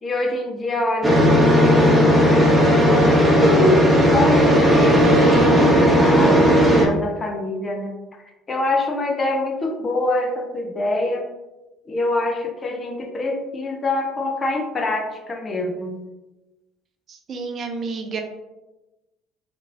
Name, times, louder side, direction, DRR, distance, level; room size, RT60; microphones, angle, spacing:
voice 1, 0.0-7.9 8.5-11.3 11.9-16.0, left 2 dB, 30° left, 3 dB, 0.6 m, -25 dB
sound 1, 1.0-6.9, equal, 15° right, 0.8 m, -15 dB
voice 2, 17.1-18.2, right 4 dB, 50° right, 4 dB, 0.5 m, -30 dB
2.9 x 2.6 x 2.5 m, 1.0 s
hypercardioid pair, 60°, 0 cm